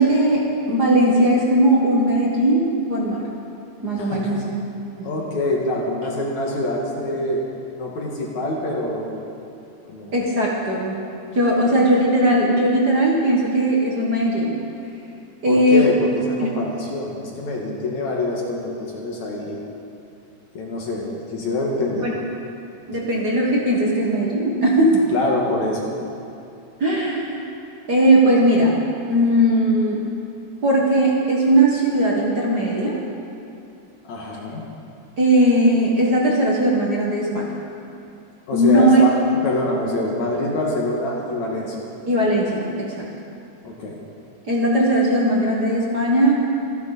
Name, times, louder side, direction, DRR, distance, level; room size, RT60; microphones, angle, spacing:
voice 1, 0.0-3.3 3.8-4.4 5.0-5.1 10.1-11.0 11.3-14.6 15.4-15.9 16.4-16.5 22.0-22.1 22.9-25.1 26.8-27.4 27.9-28.8 29.1-30.0 30.6-33.0 35.2-37.5 38.5-39.0 42.1-43.0 44.5-46.4, right 1 dB, 40° right, -3 dB, 1.7 m, -18 dB
voice 2, 4.0-4.4 5.0-7.4 7.7-9.2 9.9-10.2 15.5-19.6 20.5-22.1 25.1-25.9 34.0-34.6 38.5-41.8 43.6-44.0, left 1 dB, 70° left, -2 dB, 2.8 m, -25 dB
27.0 x 10.5 x 4.1 m, 2.7 s
omnidirectional pair, 3.6 m